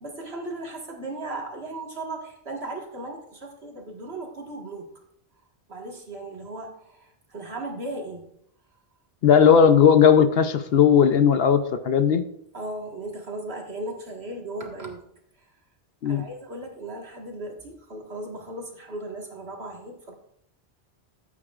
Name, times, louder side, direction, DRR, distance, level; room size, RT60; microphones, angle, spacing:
voice 1, 0.0-4.9 5.7-8.3 12.5-15.0 16.0-20.1, right 2 dB, 70° right, 0 dB, 2.0 m, -36 dB
voice 2, 9.2-12.3 16.0-16.2, left 7 dB, 65° left, 9 dB, 0.9 m, -17 dB
13.5 x 8.4 x 2.5 m, 0.73 s
omnidirectional pair, 1.1 m